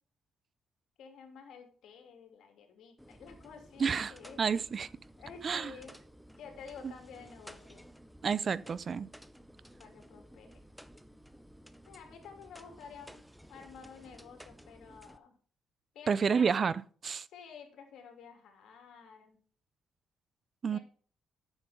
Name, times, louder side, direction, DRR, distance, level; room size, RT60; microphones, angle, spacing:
voice 1, 1.0-4.4 5.2-5.9 6.4-7.8 9.8-10.5 11.8-13.2 13.5-15.4 15.9-16.5 17.3-19.4 20.7-20.8, left 6 dB, 75° left, 3.0 m, -51 dB
sound 1, 3.0-15.2, equal, ahead, 0.8 m, -55 dB
voice 2, 3.8-4.1 4.4-4.9 5.4-5.7 8.2-9.1 16.1-17.3 20.6-20.8, right 6 dB, 45° right, 0.5 m, -30 dB
9.3 x 7.3 x 5.1 m
cardioid pair, 90°, 0 cm